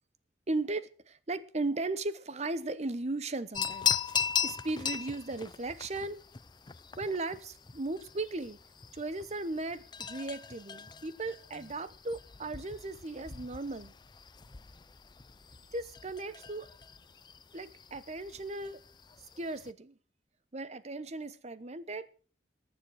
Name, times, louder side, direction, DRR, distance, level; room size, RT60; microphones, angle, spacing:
voice 1, 0.5-6.2 7.0-8.6 8.9-13.9 15.7-16.7 17.5-18.8 19.4-20.0 20.5-22.1, right 2 dB, 40° right, 0.9 m, -37 dB
sound 1, 3.5-19.7, left 7 dB, 25° left, 0.5 m, -39 dB
20.0 x 7.3 x 6.4 m
head